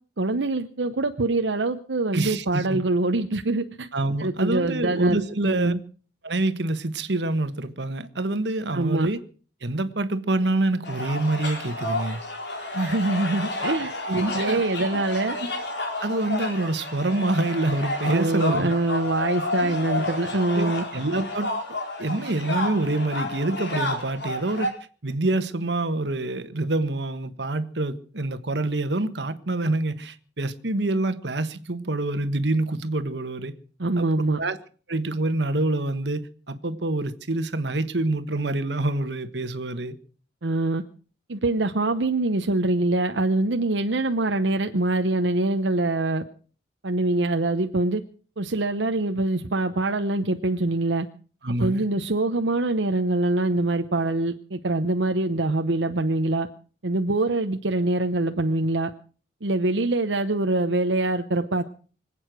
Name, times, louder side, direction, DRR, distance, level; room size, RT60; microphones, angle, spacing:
voice 1, 0.2-3.9 4.2-5.8 8.7-9.1 12.7-13.9 14.3-15.4 18.1-20.8 33.8-34.4 40.4-40.8 41.3-46.2 46.8-48.0 48.4-51.1 51.6-56.5 56.8-58.9 59.4-61.6, right 2 dB, 85° right, 0.9 m, -24 dB
voice 2, 2.1-2.8 3.9-5.7 6.2-9.2 9.6-12.2 14.1-14.9 16.0-18.7 19.6-21.5 22.0-24.7 25.0-33.5 34.0-34.1 34.4-34.6 34.9-40.0 51.4-51.8, right 2 dB, 70° right, 1.4 m, -26 dB
sound 1, 10.8-24.7, left 2 dB, 70° left, 4.5 m, -31 dB
25.0 x 8.7 x 6.2 m
head